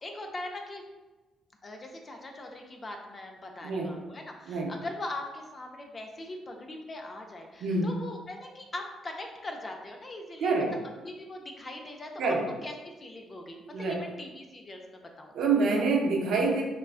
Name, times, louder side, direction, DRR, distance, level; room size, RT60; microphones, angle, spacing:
voice 1, 0.0-0.8 1.6-10.5 11.0-12.3 12.6-15.3, left 2 dB, 35° left, 3 dB, 0.4 m, -41 dB
voice 2, 3.6-4.0 4.5-4.7 7.6-8.0 10.4-10.7 12.2-12.5 13.7-14.0 15.3-16.6, right 3 dB, 75° right, 0 dB, 0.5 m, -26 dB
3.7 x 2.2 x 2.4 m, 1.2 s
cardioid pair, 90°, 0 cm